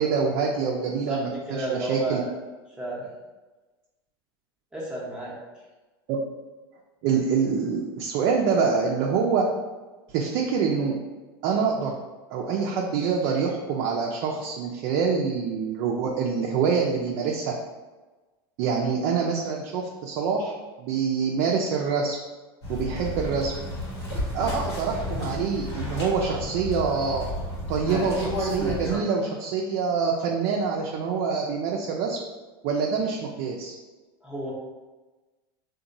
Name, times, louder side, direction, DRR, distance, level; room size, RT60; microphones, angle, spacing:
voice 1, 0.0-2.2 6.1-6.2 7.0-9.4 10.1-10.9 11.4-11.9 12.3-17.5 18.6-20.5 20.8-22.2 22.7-23.5 24.3-27.3 27.7-32.2 32.6-33.7, right 5 dB, 55° right, -1 dB, 0.4 m, -25 dB
voice 2, 1.5-2.3 2.8-3.1 4.7-5.3 34.2-34.5, right 2 dB, 5° right, -7 dB, 0.7 m, -31 dB
sound 1, 22.6-29.0, left 1 dB, 85° left, 1.0 m, -32 dB
2.8 x 2.2 x 2.6 m, 1.2 s
hypercardioid pair, 95°, 13 cm